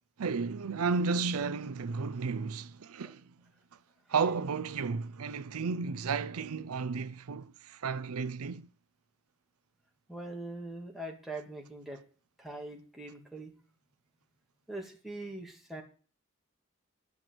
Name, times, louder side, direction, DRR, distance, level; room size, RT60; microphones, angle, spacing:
voice 1, 0.2-3.2 4.1-8.7, right 5 dB, 80° right, 0.5 m, -33 dB
voice 2, 10.1-12.0 12.4-13.5 14.7-15.8, right 2 dB, ahead, 2.4 m, -42 dB
11.0 x 6.1 x 7.8 m
head